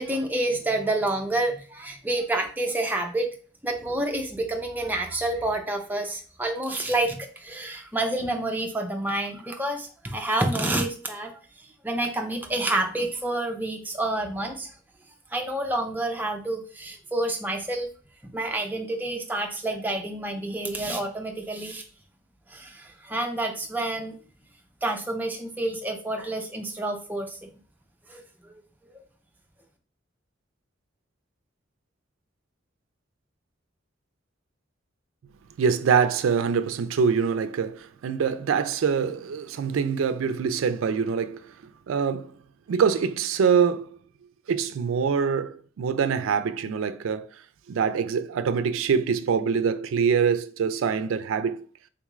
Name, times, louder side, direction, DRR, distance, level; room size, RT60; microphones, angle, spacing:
voice 1, 0.0-3.3 3.6-11.4 11.8-14.7 15.3-17.9 18.3-21.8 22.5-24.2 24.8-27.5 28.1-28.6, right 2 dB, 10° right, 0.5 m, -28 dB
voice 2, 35.6-41.5 41.9-42.3 42.7-44.0 44.5-47.3 47.7-51.7, right 6 dB, 85° right, 0.3 m, -24 dB
3.8 x 2.4 x 3.0 m
head